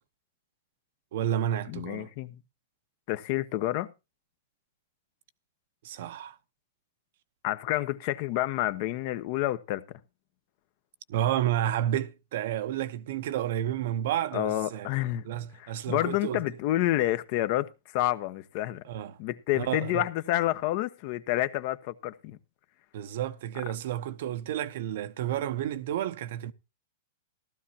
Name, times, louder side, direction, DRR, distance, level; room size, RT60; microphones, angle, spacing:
voice 1, 1.1-2.1 5.8-6.4 11.1-14.9 15.2-16.4 18.8-19.2 19.5-20.0 22.9-26.5, right 11 dB, 65° right, 0.9 m, -31 dB
voice 2, 1.7-2.4 3.1-3.9 7.4-9.8 14.3-15.2 15.5-18.8 19.2-22.4, left 15 dB, 50° left, 1.0 m, -29 dB
15.5 x 12.5 x 2.9 m
hypercardioid pair, 130°, 0 cm